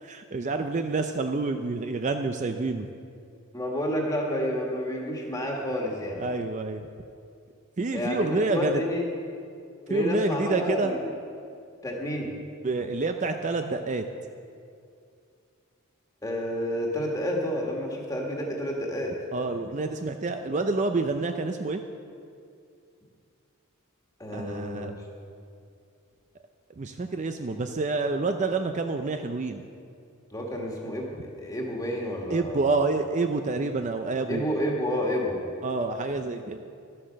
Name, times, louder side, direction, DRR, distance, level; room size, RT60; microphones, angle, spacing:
voice 1, 0.0-2.9 6.2-6.9 7.8-8.8 9.9-10.9 12.6-14.0 19.3-21.8 24.3-25.0 26.8-29.6 32.3-34.4 35.6-36.7, right 3 dB, 35° right, 6 dB, 0.4 m, -28 dB
voice 2, 3.5-6.2 7.9-9.0 9.9-11.1 11.8-12.3 16.2-19.2 24.2-24.9 30.3-32.8 34.3-35.4, equal, 15° left, -1 dB, 1.7 m, -30 dB
12.0 x 8.6 x 6.4 m, 2.4 s
head